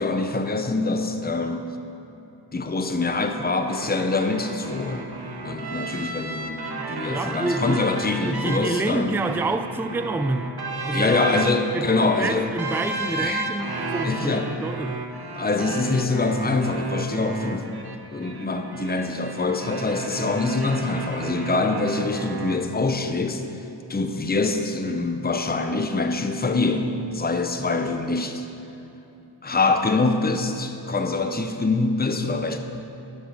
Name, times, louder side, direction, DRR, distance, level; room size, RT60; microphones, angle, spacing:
voice 1, 0.0-1.7 2.5-5.1 5.4-9.2 10.9-12.5 13.2-13.5 14.0-14.5 15.3-17.7 18.1-23.4 23.9-28.4 29.4-32.6, left 3 dB, 20° left, 6 dB, 0.7 m, -24 dB
sound 1, 3.7-22.6, right 3 dB, 55° right, 0.9 m, -33 dB
voice 2, 7.0-7.9 8.3-10.5 10.8-11.4 11.7-15.0, right 2 dB, 5° right, 10 dB, 0.3 m, -28 dB
11.5 x 6.1 x 6.5 m, 2.8 s
wide cardioid pair, 50°, 46 cm